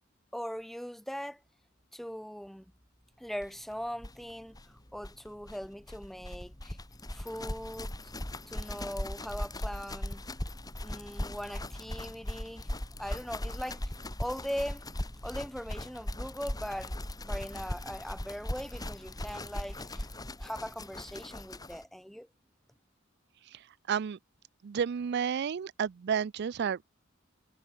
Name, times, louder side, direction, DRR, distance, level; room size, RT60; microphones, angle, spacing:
voice 1, 0.3-1.4 1.9-2.6 3.2-4.6 4.9-6.8 7.1-7.9 8.5-10.2 10.8-12.6 13.0-13.8 14.2-14.8 15.2-16.9 17.2-20.1 20.4-22.3, equal, ahead, 1.1 m, -40 dB
sound 1, 3.4-3.5 3.7-3.8 4.0-21.8, left 1 dB, 20° left, 2.3 m, -39 dB
voice 2, 23.5-24.2 24.6-26.9, right 7 dB, 55° right, 0.4 m, -32 dB
head